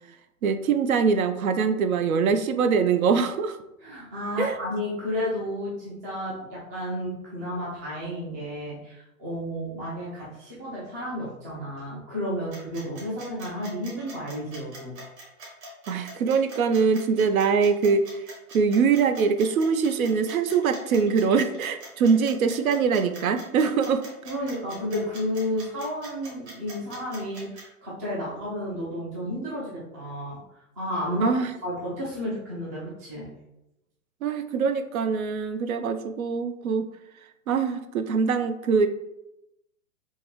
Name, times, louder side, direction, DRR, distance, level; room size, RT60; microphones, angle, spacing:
voice 1, 0.4-3.6 4.4-4.6 15.9-24.0 31.2-31.5 34.2-36.9 37.5-38.9, right 5 dB, 70° right, 9 dB, 0.5 m, -23 dB
voice 2, 3.8-14.9 24.3-30.4 30.8-33.3, left 1 dB, 15° right, -6 dB, 0.3 m, -32 dB
sound 1, 12.5-27.6, right 1 dB, 45° right, 1.5 m, -43 dB
3.7 x 2.7 x 3.0 m, 0.89 s
figure-of-eight pair, 115°, 45 cm